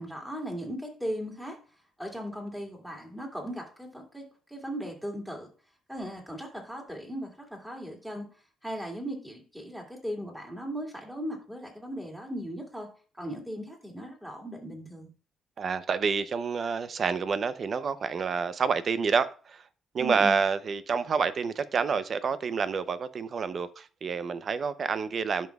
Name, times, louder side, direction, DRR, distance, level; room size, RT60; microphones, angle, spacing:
voice 1, 0.0-1.6 2.0-5.5 5.9-8.3 8.6-12.9 13.2-15.1 20.0-20.4, equal, 5° right, 2.4 m, -37 dB
voice 2, 15.6-19.6 19.9-25.5, right 5 dB, 50° right, 0.6 m, -28 dB
13.0 x 5.3 x 2.3 m
cardioid pair, 90°, 0 cm